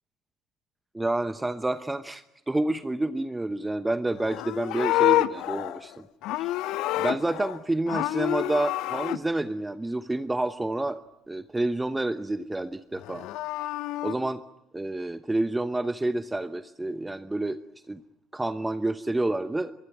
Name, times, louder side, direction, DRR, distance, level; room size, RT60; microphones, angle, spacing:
voice 1, 0.9-6.0 6.4-6.5 6.9-11.0 11.3-13.3 14.0-14.4 14.7-17.6 17.9-18.0 18.3-19.7, right 2 dB, 10° right, 13 dB, 0.9 m, -29 dB
Livestock farm animals working animals, 4.2-7.6 7.9-9.2 13.0-14.1, left 16 dB, 55° left, 0.9 m, -28 dB
24.5 x 22.0 x 9.4 m, 0.88 s
figure-of-eight pair, 60°, 0 cm